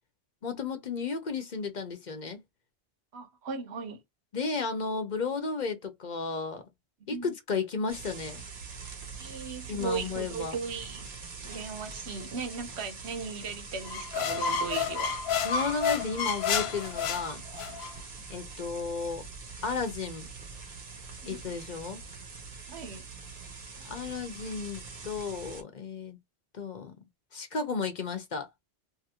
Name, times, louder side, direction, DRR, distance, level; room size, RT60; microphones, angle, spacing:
voice 1, 0.4-2.4 4.3-6.6 7.1-8.4 9.7-10.6 15.4-17.4 18.3-19.2 19.6-20.3 21.3-22.0 23.8-26.2 26.5-26.9 27.3-28.5, left 4 dB, 50° left, 0.8 m, -33 dB
voice 2, 3.1-4.0 7.1-7.3 9.2-11.1 11.4-15.2 21.2-21.4 22.7-23.0, right 5 dB, 85° right, 1.0 m, -37 dB
sound 1, 7.9-25.6, right 4 dB, 55° right, 0.9 m, -44 dB
sound 2, 13.8-17.9, left 6 dB, 75° left, 0.8 m, -30 dB
2.7 x 2.5 x 2.8 m
omnidirectional pair, 1.1 m